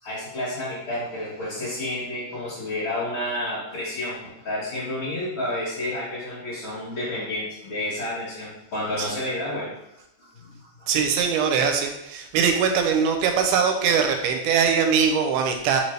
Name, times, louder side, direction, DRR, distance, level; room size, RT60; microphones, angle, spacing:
voice 1, 0.0-9.7 10.2-10.9, left 1 dB, 55° left, -10 dB, 1.9 m, -30 dB
voice 2, 10.9-15.8, right 6 dB, 85° right, 5 dB, 2.1 m, -22 dB
4.6 x 2.7 x 3.2 m, 0.87 s
omnidirectional pair, 3.6 m